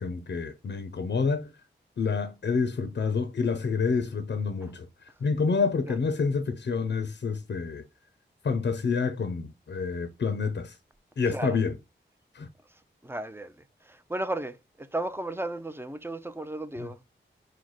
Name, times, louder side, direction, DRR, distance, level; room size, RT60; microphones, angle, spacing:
voice 1, 0.0-1.5 2.0-7.8 8.4-10.8 11.2-11.8 12.3-12.5 16.8-16.9, left 5 dB, 60° left, 0.6 m, -28 dB
voice 2, 13.0-13.5 13.9-17.0, right 1 dB, 10° right, 0.5 m, -34 dB
4.7 x 2.1 x 3.9 m
cardioid pair, 45°, 20 cm